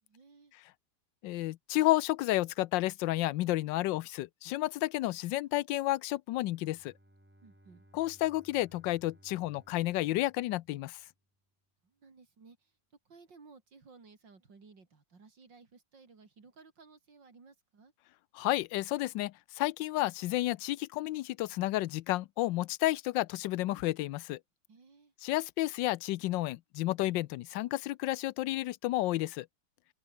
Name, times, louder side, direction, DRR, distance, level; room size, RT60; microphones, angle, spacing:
voice 1, 0.0-0.5 7.4-7.9 11.8-17.9 24.7-25.1, right 4 dB, 80° right, 4.1 m, -58 dB
voice 2, 1.2-6.9 7.9-11.0 18.3-24.4 25.2-29.5, left 16 dB, 90° left, 1.3 m, -31 dB
Bowed string instrument, 6.5-11.3, right 1 dB, 5° right, 2.7 m, -63 dB
omnidirectional pair, 1.9 m